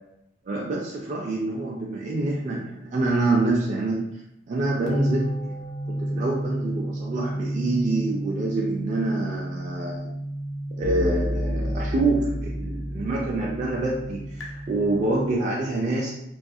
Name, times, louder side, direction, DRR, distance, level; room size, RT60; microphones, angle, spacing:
voice 1, 0.5-4.2 4.5-5.6 5.9-10.1 10.8-16.1, right 2 dB, 40° right, -3 dB, 0.3 m, -26 dB
sound 1, 4.9-15.4, right 1 dB, 90° left, 0.6 m, -30 dB
2.3 x 2.3 x 2.6 m, 0.83 s
head